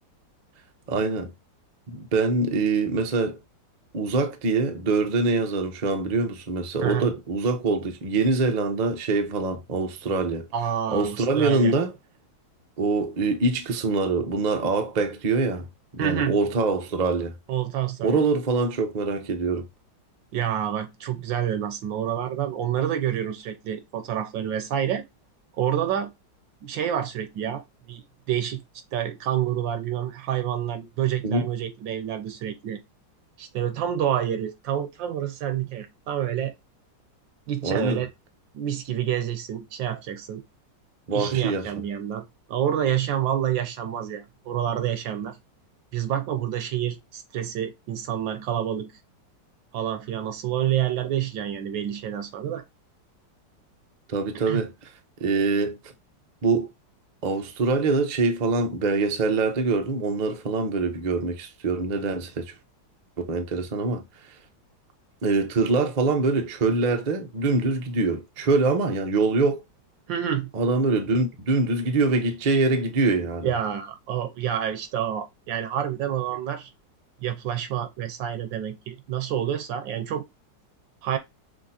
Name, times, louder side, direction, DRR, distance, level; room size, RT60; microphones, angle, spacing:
voice 1, 0.9-1.3 1.9-3.4 3.9-10.5 10.9-11.9 12.8-15.7 15.9-17.3 18.0-19.7 31.2-31.5 37.6-38.0 41.1-41.7 54.1-54.7 55.2-55.8 56.4-56.7 57.2-62.5 63.2-64.0 65.2-69.6 70.5-73.5, right 3 dB, 45° right, 0.5 m, -24 dB
voice 2, 10.5-11.7 16.0-16.4 17.5-18.2 20.3-25.0 25.6-26.1 26.6-28.6 28.9-32.8 33.4-36.5 37.5-38.1 38.5-40.4 41.1-45.4 45.9-48.9 49.7-52.6 54.5-54.6 70.1-70.5 73.4-76.7 77.2-80.2 81.0-81.2, right 10 dB, 85° right, 1.6 m, -28 dB
6.1 x 2.7 x 2.7 m
omnidirectional pair, 2.0 m